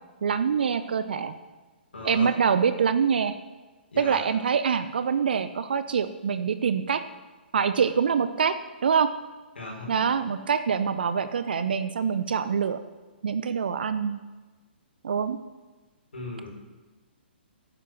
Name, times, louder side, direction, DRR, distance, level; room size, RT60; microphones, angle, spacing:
voice 1, 0.2-1.4 2.0-3.3 4.0-7.0 7.5-8.5 8.8-9.1 9.9-12.8 13.2-14.2 15.0-15.4, right 6 dB, 60° right, 11 dB, 0.6 m, -25 dB
voice 2, 1.9-2.3 3.9-4.2 9.6-9.9 16.1-16.5, left 2 dB, 70° left, -1 dB, 4.0 m, -37 dB
10.0 x 9.1 x 6.0 m, 1.3 s
figure-of-eight pair, 120°, 6 cm